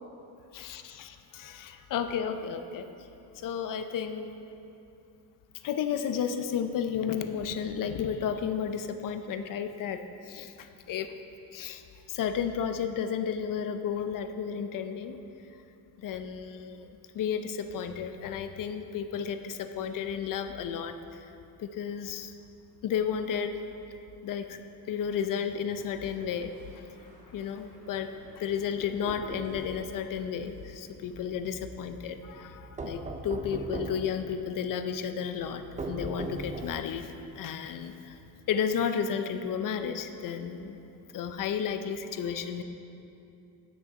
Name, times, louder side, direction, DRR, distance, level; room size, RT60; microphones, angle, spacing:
voice 1, 0.5-2.9 3.4-4.3 5.6-11.1 11.5-11.8 12.1-15.2 16.0-16.9 17.1-21.3 21.6-22.3 22.8-23.5 24.2-24.6 24.9-26.5 27.3-38.2 38.5-40.8 41.1-42.6, left 7 dB, 60° left, 8 dB, 0.6 m, -33 dB
sound 1, 25.7-33.2, right 1 dB, 85° right, 2.2 m, -55 dB
sound 2, 28.8-29.8 32.8-34.1 35.8-36.9, right 2 dB, 20° right, 0.6 m, -37 dB
10.0 x 6.2 x 5.2 m, 2.7 s
cardioid pair, 155°, 36 cm